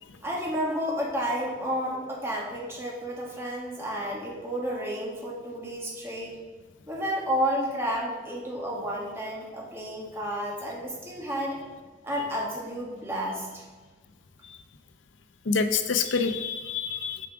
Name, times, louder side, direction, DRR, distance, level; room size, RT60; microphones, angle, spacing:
voice 1, 0.2-6.3 6.9-11.6 12.0-13.6, equal, 15° right, -3 dB, 1.6 m, -31 dB
voice 2, 15.5-17.3, left 5 dB, 90° left, 9 dB, 0.6 m, -27 dB
7.1 x 4.9 x 4.8 m, 1.3 s
head